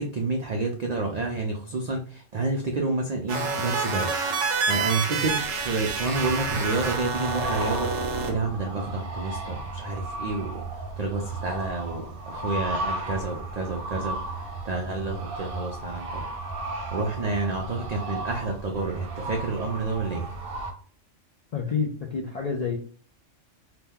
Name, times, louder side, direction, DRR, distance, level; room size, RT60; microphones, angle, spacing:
voice 1, 0.0-4.1 4.7-7.9 8.2-10.6 11.0-16.2 16.9-20.3, right 3 dB, 70° right, 2 dB, 0.4 m, -29 dB
sound 1, 3.3-8.3, right 4 dB, 90° right, 1.0 m, -28 dB
sound 2, 5.4-20.7, right 2 dB, 55° right, 0.8 m, -35 dB
voice 2, 21.5-22.8, left 5 dB, 65° left, 0 dB, 0.3 m, -28 dB
2.8 x 2.2 x 3.5 m, 0.44 s
omnidirectional pair, 1.3 m